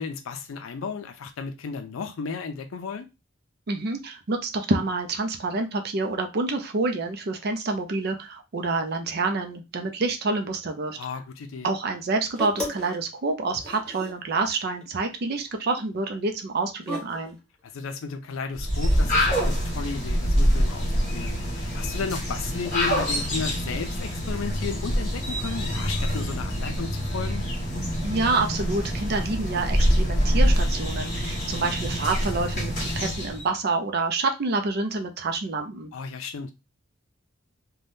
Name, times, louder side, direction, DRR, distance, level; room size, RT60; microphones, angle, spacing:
voice 1, 0.0-3.1 11.0-11.7 17.7-27.5 35.9-36.5, left 5 dB, 85° left, 0.4 m, -34 dB
voice 2, 3.7-11.0 11.6-17.4 28.0-35.9, right 3 dB, 55° right, 0.5 m, -27 dB
sound 1, 12.4-13.0 13.2-14.3 14.8-15.2 15.5-15.6 16.8-17.3 18.8-19.8, left 1 dB, 5° left, 1.0 m, -36 dB
sound 2, 18.5-33.4, equal, 40° left, 1.5 m, -25 dB
3.4 x 2.2 x 2.6 m
head